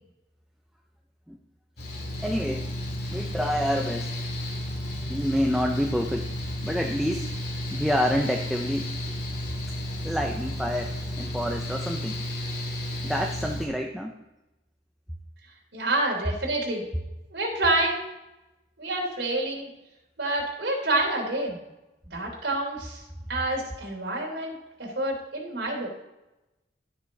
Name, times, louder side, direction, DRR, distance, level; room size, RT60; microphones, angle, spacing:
Mechanical fan, 1.8-13.7, left 1 dB, 65° left, 2.8 m, -32 dB
voice 1, 2.2-2.7 3.1-4.2 5.1-6.3 6.6-7.3 7.7-8.9 10.0-12.2 13.0-14.2, equal, ahead, 1 dB, 0.6 m, -28 dB
voice 2, 15.7-16.8 17.3-18.0 18.8-19.7 20.2-21.6 22.1-23.0 23.3-24.5 24.8-25.9, right 2 dB, 90° right, -1 dB, 3.4 m, -27 dB
16.5 x 6.1 x 4.0 m, 0.97 s
head